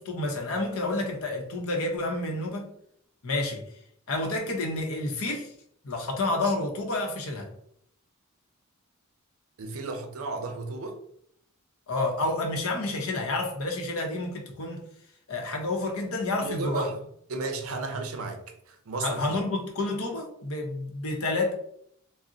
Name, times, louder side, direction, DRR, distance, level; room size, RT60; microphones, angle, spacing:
voice 1, 0.0-2.7 3.2-3.7 4.1-5.5 5.8-7.5 11.9-14.9 15.3-16.9 19.0-21.5, left 2 dB, 80° left, 0.7 m, -29 dB
voice 2, 9.6-11.0 16.4-19.4, right 3 dB, 80° right, 0.5 m, -34 dB
2.5 x 2.0 x 3.7 m
head